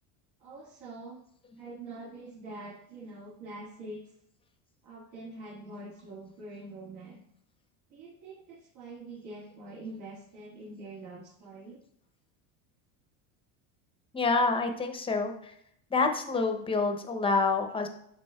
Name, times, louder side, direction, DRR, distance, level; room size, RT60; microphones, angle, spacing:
voice 1, 0.4-1.2 1.6-4.0 4.8-7.2 7.9-11.8, right 2 dB, 75° right, -6 dB, 1.9 m, -44 dB
voice 2, 14.1-15.5 15.9-17.9, left 3 dB, 15° left, 5 dB, 0.6 m, -27 dB
11.0 x 4.0 x 2.3 m, 0.71 s
supercardioid pair, 125°, 43 cm